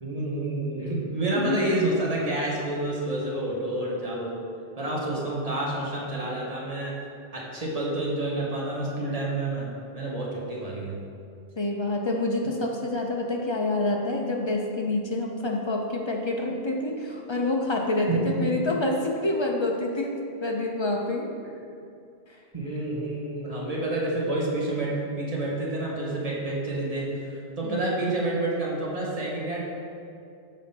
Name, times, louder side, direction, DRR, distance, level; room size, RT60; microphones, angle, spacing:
voice 1, 0.0-4.4 4.8-7.0 7.3-9.7 9.9-11.0 18.1-18.4 22.5-29.6, right 2 dB, 35° right, -4 dB, 1.2 m, -29 dB
voice 2, 11.6-21.3 27.6-27.8, left 2 dB, 35° left, 0 dB, 0.5 m, -27 dB
6.6 x 3.7 x 5.4 m, 2.5 s
omnidirectional pair, 1.0 m